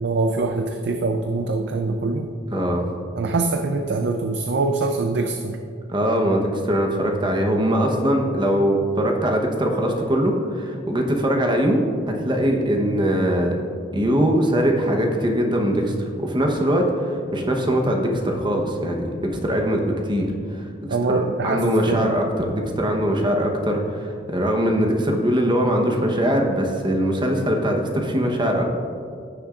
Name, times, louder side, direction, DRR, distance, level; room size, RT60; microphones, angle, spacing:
voice 1, 0.0-2.3 3.1-5.6 20.9-22.1, right 3 dB, 60° right, 5 dB, 0.4 m, -24 dB
voice 2, 2.5-2.8 5.9-13.6 13.9-20.7 21.1-28.6, equal, 25° right, 2 dB, 0.9 m, -21 dB
15.5 x 6.7 x 2.5 m, 2.3 s
head